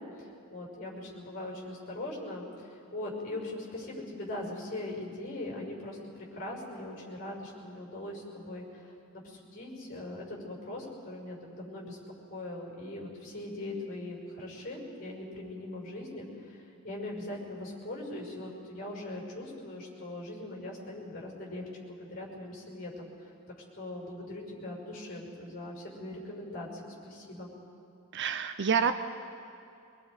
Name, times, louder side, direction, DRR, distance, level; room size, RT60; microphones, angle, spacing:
voice 1, 0.0-12.0 12.3-23.1 23.7-27.5, left 1 dB, 45° left, -1 dB, 5.8 m, -41 dB
voice 2, 28.1-28.9, right 6 dB, 55° right, 9 dB, 0.6 m, -27 dB
24.0 x 22.5 x 4.9 m, 2.6 s
head